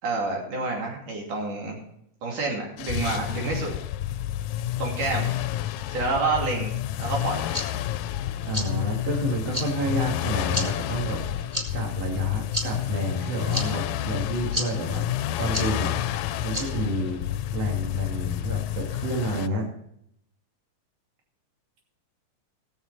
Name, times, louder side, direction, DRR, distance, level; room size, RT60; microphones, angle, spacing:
voice 1, 0.0-1.8 2.2-3.7 4.8-5.3 5.9-6.7 7.0-7.5, right 3 dB, 85° right, -1 dB, 4.3 m, -28 dB
sound 1, 2.8-19.5, left 12 dB, 80° left, 1.9 m, -30 dB
sound 2, 7.2-17.4, left 1 dB, 15° right, 2.0 m, -37 dB
voice 2, 8.4-11.3 11.7-15.0 15.4-16.0 16.4-17.2 17.5-19.7, equal, 55° right, -1 dB, 3.5 m, -29 dB
19.0 x 7.5 x 4.1 m, 0.72 s
omnidirectional pair, 3.5 m